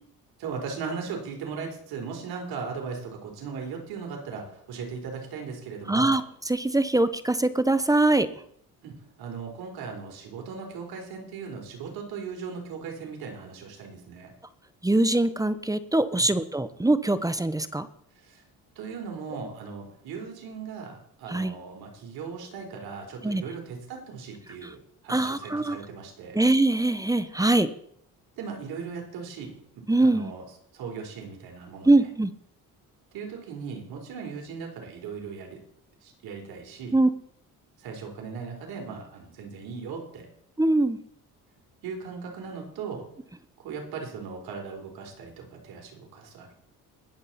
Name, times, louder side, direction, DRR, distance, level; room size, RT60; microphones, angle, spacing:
voice 1, 0.4-6.1 8.8-14.3 16.1-16.2 18.2-18.4 18.8-24.8 25.0-26.4 28.4-29.6 30.0-30.4 30.7-31.9 33.1-35.6 36.0-36.9 37.8-40.3 41.8-43.0 43.6-46.5, right 5 dB, 80° right, 1 dB, 4.0 m, -38 dB
voice 2, 5.9-8.3 14.8-17.9 21.3-21.5 23.2-23.4 24.6-24.7 25.1-25.8 26.3-27.7 29.9-30.3 31.8-32.3 36.9-37.1 40.6-41.0, right 2 dB, 10° right, 13 dB, 0.8 m, -23 dB
21.0 x 7.5 x 4.2 m, 0.65 s
cardioid pair, 85°, 36 cm